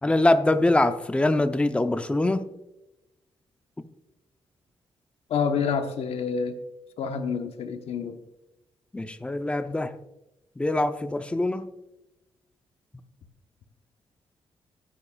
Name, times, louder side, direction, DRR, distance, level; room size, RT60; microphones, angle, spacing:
voice 1, 0.0-2.5 8.9-10.0 10.6-11.7, left 2 dB, 10° left, 9 dB, 0.6 m, -23 dB
voice 2, 5.3-6.6 7.0-8.2, left 6 dB, 80° left, 6 dB, 1.0 m, -28 dB
15.0 x 9.8 x 2.3 m, 0.93 s
wide cardioid pair, 140°, 10 cm